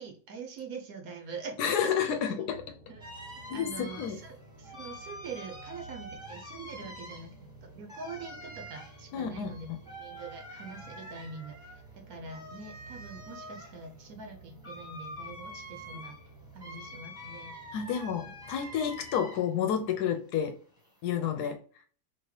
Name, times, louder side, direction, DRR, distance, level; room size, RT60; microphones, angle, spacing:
voice 1, 0.0-2.0 2.9-3.1 3.5-7.3 7.6-16.2 16.5-17.5, right 4 dB, 70° right, 1.1 m, -44 dB
voice 2, 1.6-2.6 3.5-4.2 6.8-6.9 9.1-9.8 17.7-20.5 21.0-21.6, left 8 dB, 80° left, 1.2 m, -30 dB
sailing-vessel-at-sea-sunset, 2.5-19.2, right 2 dB, 50° right, 1.0 m, -53 dB
sound 1, 3.0-19.7 20.0-21.2, equal, 5° right, 1.1 m, -47 dB
4.8 x 2.9 x 3.1 m
omnidirectional pair, 1.7 m